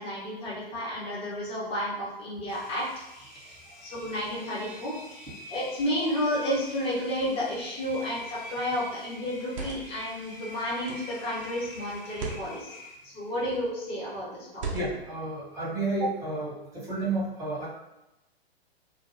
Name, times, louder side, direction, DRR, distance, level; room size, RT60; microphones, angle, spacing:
voice 1, 0.0-2.8 3.1-3.6 3.8-12.7 13.0-14.6, equal, 20° left, -7 dB, 0.9 m, -32 dB
Engine, 2.5-13.3, left 1 dB, 55° left, 1.0 m, -46 dB
sound 1, 8.2-8.5 9.3-10.0 10.8-11.2 12.0-12.5 13.4-13.7 14.5-15.2, right 4 dB, 30° right, 0.4 m, -38 dB
voice 2, 14.7-17.7, right 2 dB, 10° right, -8 dB, 0.9 m, -31 dB
2.3 x 2.1 x 3.1 m, 0.93 s
figure-of-eight pair, 115°, 32 cm